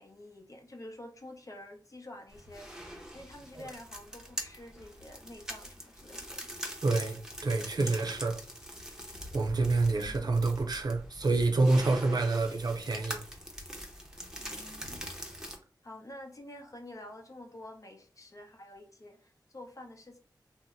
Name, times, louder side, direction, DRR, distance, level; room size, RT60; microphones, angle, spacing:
voice 1, 0.0-2.7 3.1-6.5 9.9-10.4 14.4-15.0 15.8-20.2, left 1 dB, 45° left, 0.8 m, -48 dB
sound 1, 2.3-15.6, equal, 10° right, 0.7 m, -43 dB
voice 2, 6.8-8.4 9.3-13.2, right 3 dB, 60° right, 0.5 m, -27 dB
2.7 x 2.1 x 3.6 m
wide cardioid pair, 60°, 8 cm